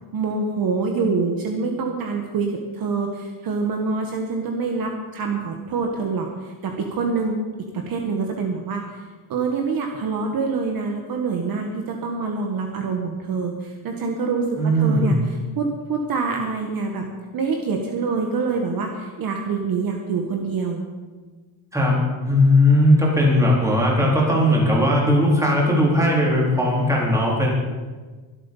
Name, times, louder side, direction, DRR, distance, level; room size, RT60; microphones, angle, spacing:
voice 1, 0.1-7.4 7.7-9.0 9.3-15.2 15.6-17.0 17.3-20.9, right 4 dB, 45° right, 2 dB, 1.6 m, -25 dB
voice 2, 14.6-15.2 21.7-27.5, left 1 dB, 5° right, -4 dB, 4.1 m, -18 dB
24.0 x 8.3 x 5.5 m, 1.4 s
cardioid pair, 155°, 48 cm